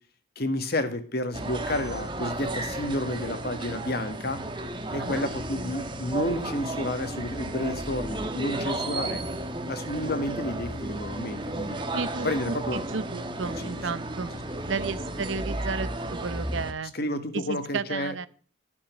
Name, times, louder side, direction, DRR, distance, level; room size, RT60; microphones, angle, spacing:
voice 1, 0.3-4.4 4.9-9.2 9.6-11.8 12.2-12.8 13.6-13.8 16.9-18.1, left 1 dB, 50° left, 10 dB, 1.7 m, -31 dB
sound 1, 1.3-16.7, right 1 dB, 25° right, 1.3 m, -33 dB
voice 2, 11.9-14.3 14.6-16.9 17.3-18.3, right 4 dB, 65° right, 16 dB, 0.7 m, -33 dB
12.5 x 7.1 x 6.4 m, 0.42 s
head